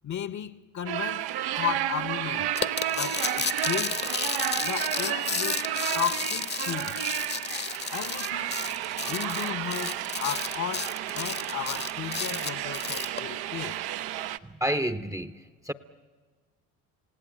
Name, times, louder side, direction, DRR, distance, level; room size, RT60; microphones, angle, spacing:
voice 1, 0.0-1.3 1.6-2.5 2.8-4.0 4.6-7.1 7.9-8.6 9.0-13.8, left 9 dB, 40° left, 1.1 m, -35 dB
sound 1, 0.9-14.4, right 12 dB, 60° right, 0.9 m, -32 dB
sound 2, 2.6-13.2, left 5 dB, 25° left, 1.0 m, -33 dB
voice 2, 14.4-15.7, right 1 dB, 10° right, 0.9 m, -30 dB
27.5 x 17.0 x 8.8 m
hypercardioid pair, 70°, 43 cm